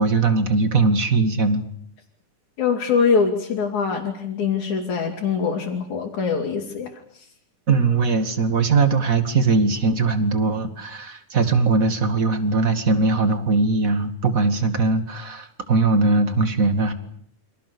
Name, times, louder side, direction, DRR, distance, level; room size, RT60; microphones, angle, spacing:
voice 1, 0.0-1.6 7.7-16.9, right 3 dB, 30° right, 9 dB, 2.3 m, -20 dB
voice 2, 2.6-7.2, left 5 dB, 65° left, 0 dB, 4.4 m, -23 dB
29.5 x 26.0 x 7.0 m, 0.65 s
omnidirectional pair, 3.6 m